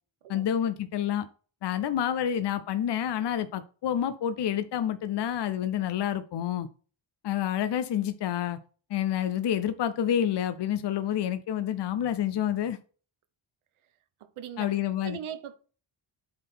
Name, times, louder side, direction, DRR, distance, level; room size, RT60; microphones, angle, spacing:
voice 1, 0.3-1.3 1.6-6.7 7.2-8.6 8.9-12.8 14.6-15.2, left 10 dB, 55° left, 0.7 m, -28 dB
voice 2, 14.2-15.6, right 9 dB, 85° right, 1.0 m, -40 dB
8.8 x 3.9 x 6.0 m
wide cardioid pair, 155°, 49 cm